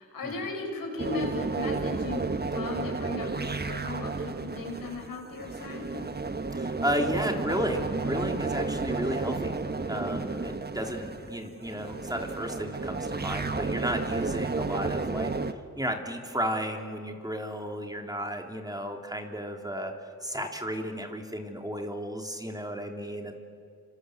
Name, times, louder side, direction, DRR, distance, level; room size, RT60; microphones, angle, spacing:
voice 1, 0.0-5.9, left 3 dB, 85° left, 1 dB, 6.5 m, -37 dB
sound 1, 1.0-15.5, right 3 dB, 30° right, 1.4 m, -32 dB
voice 2, 6.5-9.5 9.9-15.3 15.7-19.9 20.2-23.3, equal, 10° right, 3 dB, 3.2 m, -33 dB
27.5 x 26.5 x 7.9 m, 2.2 s
cardioid pair, 70°, 34 cm